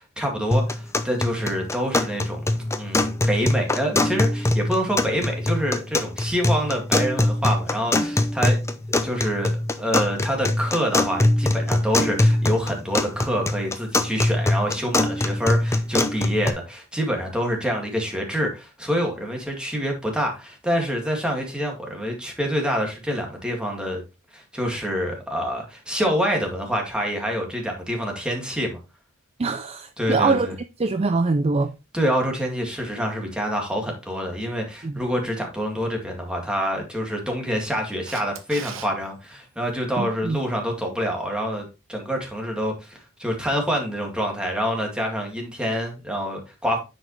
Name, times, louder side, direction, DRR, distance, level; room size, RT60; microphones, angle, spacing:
voice 1, 0.0-2.4 2.7-24.0 24.3-28.8 30.0-30.5 31.9-46.8, equal, 5° right, 2.1 m, -26 dB
sound 1, 0.5-16.5, left 1 dB, 15° left, 0.6 m, -23 dB
voice 2, 29.4-30.5 30.8-31.7 34.8-35.0 40.0-40.4, right 3 dB, 30° right, 0.4 m, -23 dB
Camera, 38.1-38.9 45.6-45.7, right 8 dB, 70° right, 1.0 m, -38 dB
9.7 x 5.2 x 3.2 m
head